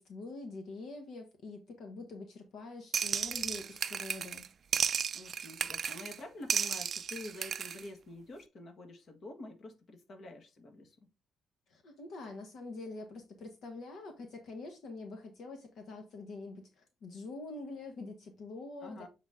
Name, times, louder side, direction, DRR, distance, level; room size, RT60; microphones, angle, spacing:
voice 1, 0.0-4.5 11.7-19.1, left 3 dB, 70° left, 1.3 m, -45 dB
sound 1, 2.9-4.5 4.7-6.2 6.5-7.8, right 7 dB, 50° right, 0.4 m, -34 dB
voice 2, 5.1-11.0 18.8-19.1, left 2 dB, 55° left, 1.5 m, -47 dB
7.1 x 4.0 x 3.6 m
cardioid pair, 90°, 0 cm